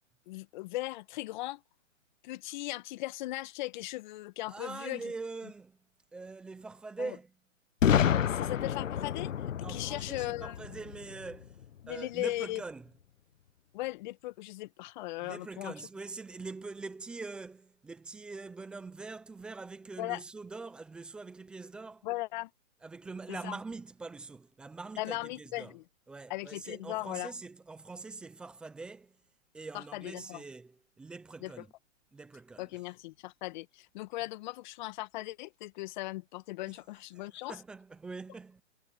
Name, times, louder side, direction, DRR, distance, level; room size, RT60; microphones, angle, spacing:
voice 1, 0.3-1.6 2.2-5.0 7.0-7.2 8.2-9.3 9.7-10.6 11.8-12.6 13.7-15.7 20.0-20.2 22.0-22.5 23.3-23.6 25.0-25.8 26.3-27.3 29.7-30.4 31.4-31.5 32.6-37.6, left 18 dB, 35° left, 2.0 m, -38 dB
voice 2, 4.5-5.8 6.1-7.3 9.6-12.9 15.2-22.1 22.8-25.8 26.1-29.2 29.5-31.7 32.1-32.7 36.7-36.8 37.2-38.6, right 3 dB, ahead, 0.5 m, -43 dB
Boom, 7.8-11.6, left 9 dB, 75° left, 1.1 m, -29 dB
hypercardioid pair, 140°, 39 cm